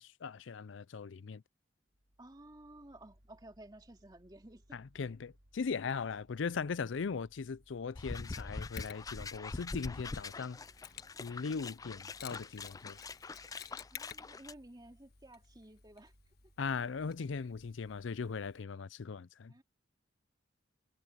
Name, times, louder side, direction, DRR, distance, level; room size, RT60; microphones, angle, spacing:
voice 1, 0.0-1.4 4.7-10.6 11.2-13.0 16.6-19.5, left 5 dB, 75° left, 0.5 m, -39 dB
Mechanical fan, 1.9-18.7, equal, 75° right, 4.2 m, -67 dB
voice 2, 2.2-4.8 13.9-16.1 19.5-19.6, right 1 dB, 20° right, 2.5 m, -54 dB
sound 1, 8.0-14.5, left 3 dB, 20° left, 0.3 m, -44 dB
Mechanisms, 8.8-18.6, left 10 dB, 55° left, 1.4 m, -55 dB
head